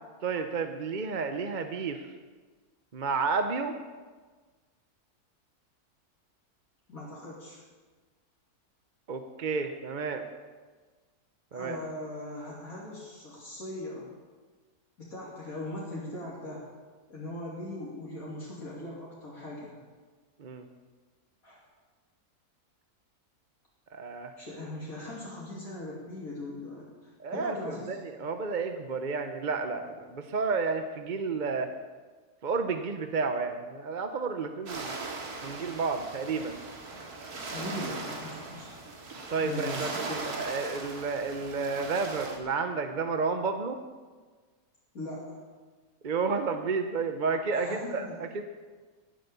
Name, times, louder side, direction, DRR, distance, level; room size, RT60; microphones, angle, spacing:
voice 1, 0.2-2.0 2.9-3.7 9.1-10.3 11.5-11.8 20.4-20.6 23.9-24.3 27.2-27.5 27.9-31.7 32.4-34.9 35.4-36.6 39.3-43.8 46.0-48.4, right 4 dB, 40° right, 7 dB, 0.7 m, -31 dB
voice 2, 6.9-7.6 11.5-14.1 15.0-16.6 17.1-19.8 21.4-21.6 24.4-28.0 37.5-38.7 39.4-40.3 44.9-45.4 47.5-48.3, left 1 dB, 65° left, -6 dB, 3.2 m, -40 dB
sound 1, 34.7-42.4, right 3 dB, 80° right, 2.4 m, -39 dB
17.0 x 8.2 x 6.9 m, 1.4 s
omnidirectional pair, 1.6 m